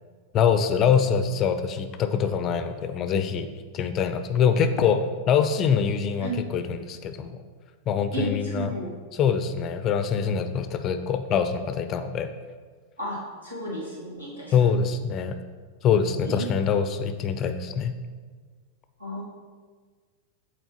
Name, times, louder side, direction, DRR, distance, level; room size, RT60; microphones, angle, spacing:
voice 1, 0.3-3.5 3.7-7.4 7.9-8.7 9.1-12.3 14.5-15.4 15.8-17.9, left 7 dB, 30° left, 9 dB, 0.4 m, -24 dB
voice 2, 8.1-8.9 13.0-14.8 16.2-16.4 19.0-19.2, right 1 dB, 85° right, -6 dB, 1.6 m, -33 dB
7.7 x 4.2 x 2.9 m, 1.5 s
figure-of-eight pair, 90°, 0 cm